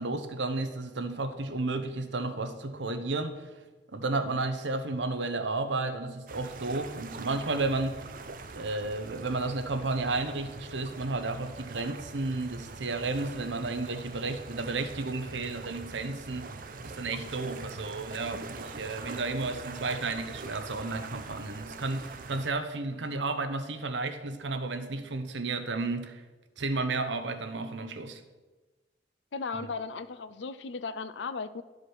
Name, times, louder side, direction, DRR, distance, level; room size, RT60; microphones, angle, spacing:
voice 1, 0.0-3.5 3.9-8.0 8.5-16.5 16.8-26.2 26.6-28.2 29.6-29.7, right 3 dB, 75° right, 8 dB, 0.9 m, -32 dB
sound 1, 6.3-22.5, right 3 dB, 50° right, 0.6 m, -43 dB
voice 2, 29.3-31.6, left 4 dB, 75° left, 14 dB, 0.5 m, -36 dB
11.5 x 4.9 x 6.3 m, 1.2 s
head